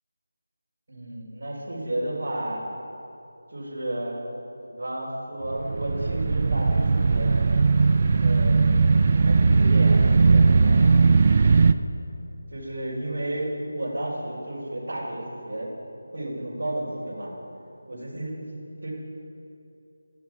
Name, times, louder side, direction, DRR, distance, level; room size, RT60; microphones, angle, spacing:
voice 1, 0.9-2.6 3.5-4.2 4.6-7.4 8.2-8.7 9.1-10.9 12.5-15.7 16.1-17.3 17.9-18.9, right 1 dB, 65° right, -6 dB, 4.0 m, -32 dB
sound 1, 5.5-11.7, right 4 dB, 40° right, 0.5 m, -19 dB
16.5 x 12.5 x 4.7 m, 2.8 s
figure-of-eight pair, 170°, 0 cm